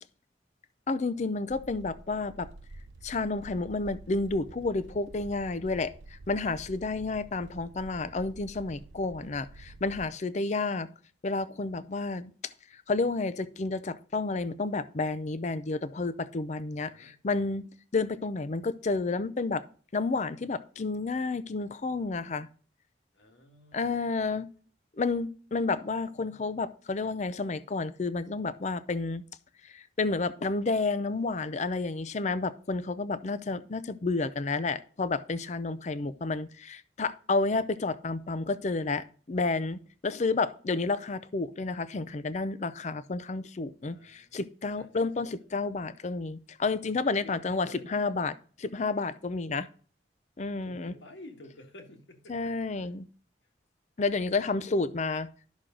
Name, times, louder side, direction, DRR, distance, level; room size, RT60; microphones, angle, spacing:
voice 1, 0.9-2.5 3.0-10.9 11.2-12.3 12.7-17.6 17.9-19.6 19.9-22.5 23.7-24.5 25.0-29.2 29.6-49.7 50.4-50.9 52.3-53.1 54.0-55.3, left 3 dB, 40° left, 15 dB, 0.5 m, -31 dB
sound 1, 1.5-10.1, right 2 dB, 75° right, 0.6 m, -49 dB
voice 2, 6.6-7.3 16.9-17.2 23.1-24.1 25.5-25.6 26.1-26.5 35.7-36.3 43.8-44.4 44.8-45.1 47.2-48.0 50.6-52.5, left 1 dB, 85° left, 3 dB, 1.8 m, -53 dB
11.5 x 6.2 x 3.8 m, 0.43 s
head